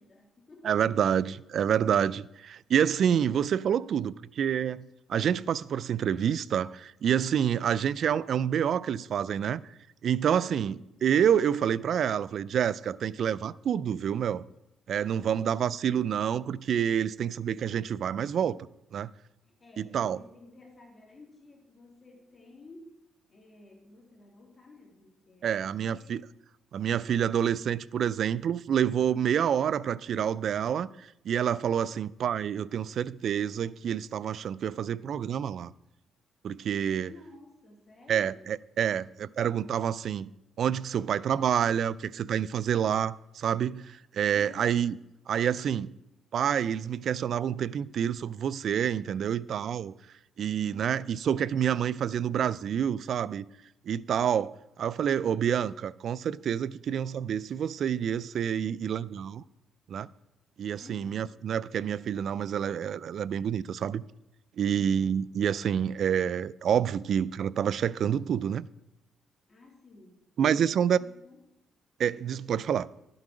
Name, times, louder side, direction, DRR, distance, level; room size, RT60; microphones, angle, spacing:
voice 1, 0.0-1.6 10.4-10.9 15.2-15.7 19.4-22.9 23.3-26.3 37.1-38.5 44.3-44.8 50.7-51.1 60.7-61.3 64.8-65.2 69.5-70.7 71.0-71.4, left 3 dB, 30° left, 3.0 m, -53 dB
voice 2, 0.6-9.6 10.0-10.8 11.0-14.4 14.9-18.6 18.9-19.1 19.8-20.2 25.4-26.2 26.7-35.7 36.4-37.1 38.1-40.3 40.6-45.0 45.3-45.9 46.3-49.9 50.4-53.4 53.9-54.5 54.8-59.4 59.9-60.1 60.6-64.0 64.6-68.7 70.4-71.0 72.0-72.9, right 8 dB, 65° right, 0.3 m, -28 dB
11.5 x 7.8 x 5.0 m
cardioid pair, 90°, 0 cm